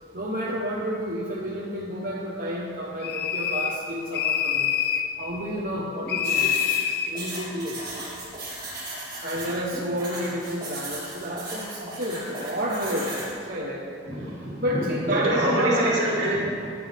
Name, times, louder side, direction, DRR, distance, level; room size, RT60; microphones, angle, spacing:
voice 1, 0.1-4.7 5.2-6.6 7.1-7.8 9.2-13.9 14.6-16.0, equal, 50° right, -5 dB, 1.2 m, -30 dB
sound 1, 3.0-3.8 4.1-5.1 6.1-7.1, left 8 dB, 55° left, 0.7 m, -25 dB
sound 2, 6.2-13.3, right 2 dB, 25° right, 3.2 m, -36 dB
voice 2, 14.0-14.6 15.1-16.7, right 1 dB, 65° right, -5 dB, 2.7 m, -25 dB
14.5 x 9.4 x 3.6 m, 2.3 s
head